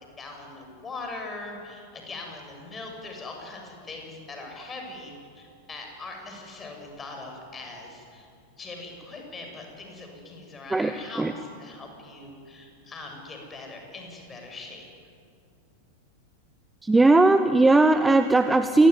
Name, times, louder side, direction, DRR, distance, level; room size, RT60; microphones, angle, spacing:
voice 1, 0.2-8.3 8.6-14.9, left 3 dB, 20° left, 2 dB, 7.7 m, -41 dB
voice 2, 10.7-11.3 16.8-18.9, right 2 dB, 10° right, 11 dB, 1.0 m, -18 dB
27.5 x 22.0 x 9.8 m, 2.4 s
figure-of-eight pair, 90°, 0 cm